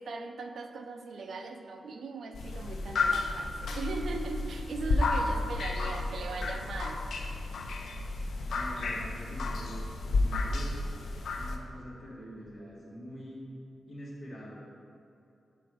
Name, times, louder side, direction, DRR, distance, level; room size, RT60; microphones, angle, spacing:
voice 1, 0.0-7.1, right 4 dB, 75° right, 5 dB, 0.5 m, -39 dB
sound 1, 2.3-11.6, left 3 dB, 85° left, 0.5 m, -32 dB
voice 2, 8.5-11.0 11.3-13.4 13.9-14.6, equal, 40° left, -7 dB, 1.5 m, -45 dB
5.0 x 4.8 x 6.2 m, 2.7 s
wide cardioid pair, 120°, 0 cm